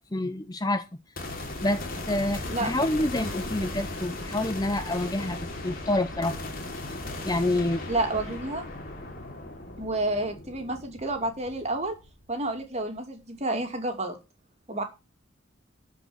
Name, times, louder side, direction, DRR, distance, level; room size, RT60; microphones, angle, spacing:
voice 1, 0.1-0.8 1.6-6.4 7.2-7.9, left 1 dB, 20° left, 10 dB, 0.6 m, -28 dB
sound 1, 1.2-12.5, left 2 dB, 45° left, 3.1 m, -37 dB
voice 2, 7.9-8.7 9.8-11.9 12.3-14.2 14.7-14.8, right 2 dB, 30° right, 4 dB, 2.6 m, -30 dB
12.5 x 5.4 x 7.8 m, 0.29 s
head